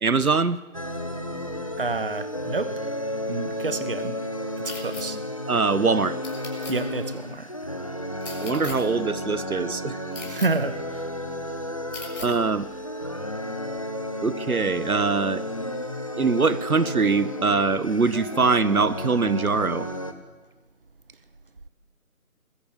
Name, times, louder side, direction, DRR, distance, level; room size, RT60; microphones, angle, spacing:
voice 1, 0.0-0.6 5.5-6.2 8.4-10.0 12.2-12.6 14.2-15.4 16.2-19.9, right 4 dB, 75° right, 16 dB, 1.1 m, -23 dB
sound 1, 0.7-20.1, left 1 dB, 25° left, 0.9 m, -32 dB
voice 2, 1.8-2.8 3.3-4.2 4.6-5.2 6.7-7.5 10.3-11.1, right 3 dB, 40° right, 13 dB, 1.0 m, -29 dB
sound 2, 4.7-5.0 6.2-6.7 8.2-8.8 10.1-10.5 11.9-12.3, left 3 dB, 55° left, 6.7 m, -38 dB
21.5 x 14.5 x 8.2 m, 1.2 s
figure-of-eight pair, 165°, 44 cm